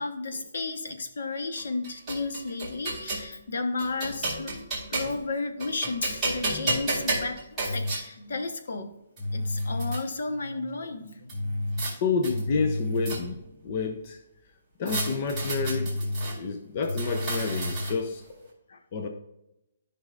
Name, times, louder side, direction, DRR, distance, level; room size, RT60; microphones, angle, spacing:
voice 1, 0.0-8.9 9.3-11.9 18.7-18.8, left 3 dB, 70° left, 7 dB, 1.1 m, -33 dB
sound 1, 1.6-3.3 3.8-5.3 5.6-8.0 8.8-8.9 9.2-10.0 11.3-11.9 12.2-13.5 14.9-16.4 16.8-18.1, right 1 dB, 5° right, 2.3 m, -30 dB
voice 2, 12.0-14.2 14.8-16.0 16.3-18.2 18.9-19.1, left 4 dB, 30° left, 5 dB, 0.6 m, -29 dB
12.5 x 5.4 x 2.5 m, 0.86 s
hypercardioid pair, 180°, 0 cm